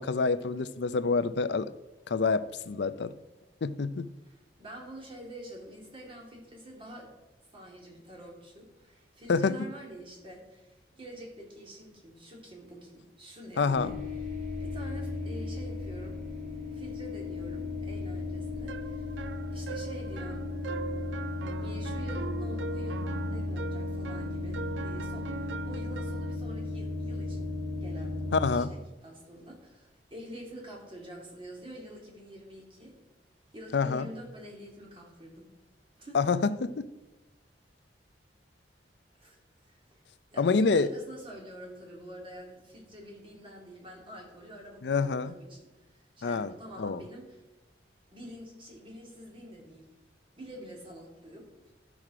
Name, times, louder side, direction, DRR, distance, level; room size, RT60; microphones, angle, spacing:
voice 1, 0.0-1.7 2.1-3.1 3.6-4.1 9.3-9.6 13.6-13.9 28.3-28.7 33.7-34.1 36.1-36.9 40.4-40.9 44.8-45.3 46.2-46.5 46.8-47.0, left 4 dB, 70° left, 14 dB, 0.5 m, -27 dB
voice 2, 4.2-7.1 7.5-13.9 14.6-16.2 16.7-19.1 19.5-20.5 21.6-28.1 28.5-32.9 33.5-35.5 36.0-36.2 39.2-39.4 39.7-40.0 40.3-47.4 48.1-49.9 50.4-51.5, equal, 30° right, -1 dB, 2.5 m, -47 dB
sound 1, 13.7-28.5, left 2 dB, 50° right, 2.6 m, -35 dB
sound 2, 18.7-26.4, right 5 dB, 80° right, 0.4 m, -41 dB
12.5 x 6.1 x 4.9 m, 1.1 s
head